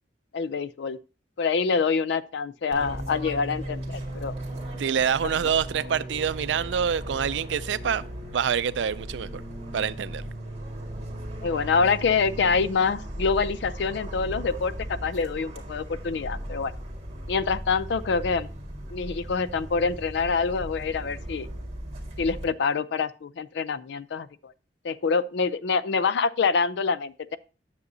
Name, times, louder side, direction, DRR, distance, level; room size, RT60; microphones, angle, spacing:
voice 1, 0.3-1.0 1.4-4.3 11.4-16.7 17.3-18.5 18.9-21.5 22.2-24.5 24.8-27.4, left 5 dB, 65° left, 0.4 m, -26 dB
Fixed-wing aircraft airplane, 2.7-22.4, right 1 dB, 35° right, 1.9 m, -37 dB
voice 2, 4.8-9.4 9.7-10.2, right 7 dB, 75° right, 0.4 m, -26 dB
9.5 x 6.9 x 2.7 m
head